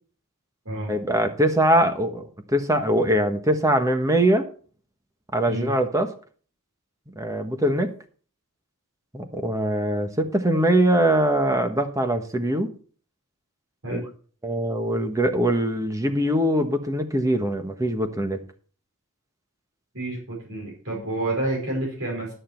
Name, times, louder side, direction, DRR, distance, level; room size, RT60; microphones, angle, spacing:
voice 1, 0.9-4.4 5.3-6.1 7.1-7.9 9.1-12.7 13.9-14.0 14.4-18.4, right 1 dB, 15° right, 7 dB, 1.3 m, -22 dB
voice 2, 19.9-22.3, right 1 dB, 65° right, -3 dB, 5.1 m, -29 dB
11.0 x 9.4 x 4.5 m, 0.42 s
head